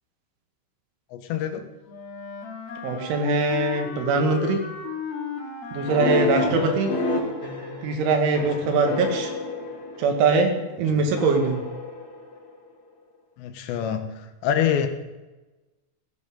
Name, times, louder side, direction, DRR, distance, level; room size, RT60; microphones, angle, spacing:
voice 1, 1.1-1.7 6.4-6.6 8.6-8.8 10.9-11.0 13.4-14.9, left 9 dB, 75° left, 7 dB, 3.2 m, -26 dB
Wind instrument woodwind instrument, 1.9-7.3, left 6 dB, 55° left, 4.1 m, -34 dB
voice 2, 2.8-4.6 5.7-6.9 7.8-9.3 10.0-11.6, right 4 dB, 90° right, 4 dB, 4.4 m, -22 dB
sound 1, 5.9-10.4 11.2-12.7, left 2 dB, 30° left, 3.1 m, -29 dB
18.0 x 15.0 x 3.8 m, 1.1 s
omnidirectional pair, 5.3 m